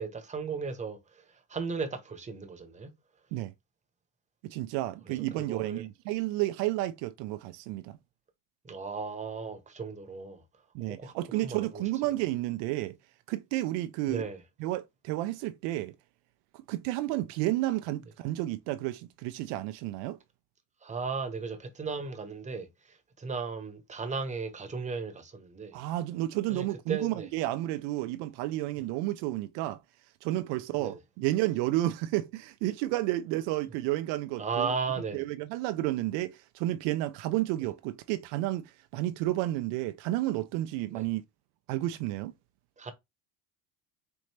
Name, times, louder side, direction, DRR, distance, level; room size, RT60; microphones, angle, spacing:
voice 1, 0.0-2.9 5.1-5.8 8.6-10.4 10.9-12.1 14.1-14.4 20.8-25.8 26.5-27.3 30.8-31.0 34.4-35.2 40.9-41.1 42.8-42.9, right 5 dB, 15° right, 0.9 m, -36 dB
voice 2, 4.4-8.0 10.7-13.0 13.3-14.3 14.6-15.9 16.7-20.2 25.7-29.8 30.2-34.7 35.1-41.2 41.7-42.3, right 16 dB, 80° right, 0.5 m, -31 dB
4.3 x 2.7 x 3.2 m
supercardioid pair, 105°, 41 cm